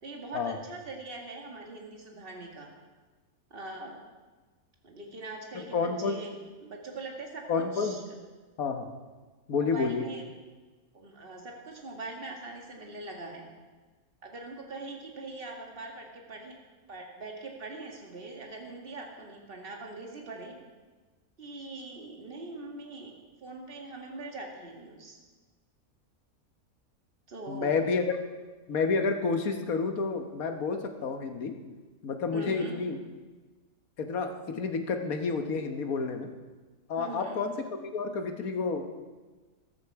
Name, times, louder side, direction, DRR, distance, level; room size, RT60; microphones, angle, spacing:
voice 1, 0.0-2.7 3.5-4.1 4.8-8.2 9.6-10.2 10.9-13.5 14.2-16.6 16.9-20.6 21.4-23.2 23.4-25.2 27.3-27.9 32.3-32.8 37.0-37.4, right 2 dB, 40° right, 1 dB, 2.1 m, -42 dB
voice 2, 5.5-6.2 7.5-8.0 8.6-8.9 9.5-10.1 27.5-28.0 28.7-31.6 32.0-33.0 34.0-36.3 36.9-39.0, left 4 dB, 75° left, 6 dB, 1.6 m, -30 dB
14.0 x 13.0 x 4.7 m, 1.3 s
omnidirectional pair, 1.5 m